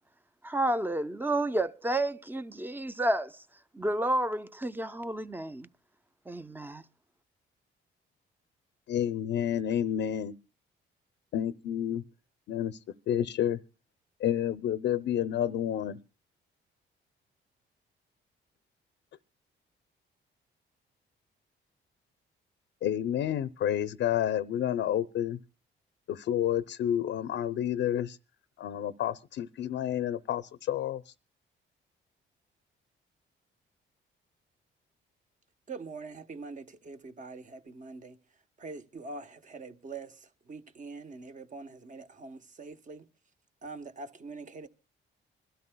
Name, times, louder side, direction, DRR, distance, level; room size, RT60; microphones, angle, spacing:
voice 1, 0.4-3.4 3.7-5.7 6.3-6.8, right 1 dB, 10° right, 0.6 m, -30 dB
voice 2, 8.9-10.3 11.3-12.0 12.5-12.8 13.1-13.6 14.2-16.0 22.8-25.4 26.1-28.2 28.6-31.1, left 10 dB, 70° left, 0.6 m, -30 dB
voice 3, 35.7-38.2 38.6-43.1 43.6-44.7, right 3 dB, 40° right, 1.0 m, -44 dB
25.5 x 12.5 x 2.2 m
cardioid pair, 90°, 20 cm